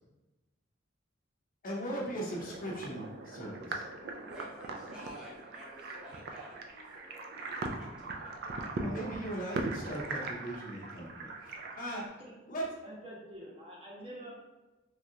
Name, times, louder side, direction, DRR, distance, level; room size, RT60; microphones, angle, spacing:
voice 1, 1.6-3.8 8.8-12.2 12.5-12.7, right 1 dB, 45° left, -3 dB, 0.6 m, -39 dB
sound 1, 2.2-12.1, right 2 dB, 55° right, 0.3 m, -40 dB
voice 2, 4.2-7.4 7.6-8.6, equal, 5° right, -7 dB, 0.6 m, -51 dB
voice 3, 12.8-14.3, right 1 dB, 30° right, -4 dB, 0.9 m, -46 dB
3.1 x 2.4 x 2.7 m, 1.1 s
head